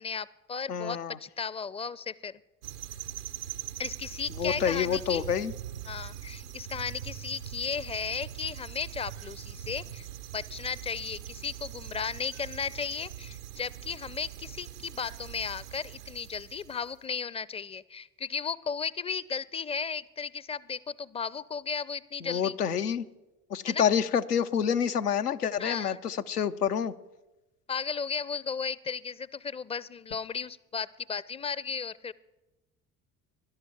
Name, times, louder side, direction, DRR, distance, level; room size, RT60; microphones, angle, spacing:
voice 1, 0.0-2.4 3.8-5.2 5.9-10.1 10.3-22.5 23.7-23.8 25.6-26.0 27.7-32.1, left 6 dB, 15° left, 20 dB, 0.5 m, -35 dB
voice 2, 0.7-1.2 4.4-5.5 22.2-23.1 23.5-26.9, left 8 dB, 85° left, 9 dB, 0.7 m, -28 dB
sound 1, 2.6-16.9, right 11 dB, 85° right, 0.8 m, -42 dB
17.5 x 11.5 x 7.1 m, 1.0 s
figure-of-eight pair, 55°, 45 cm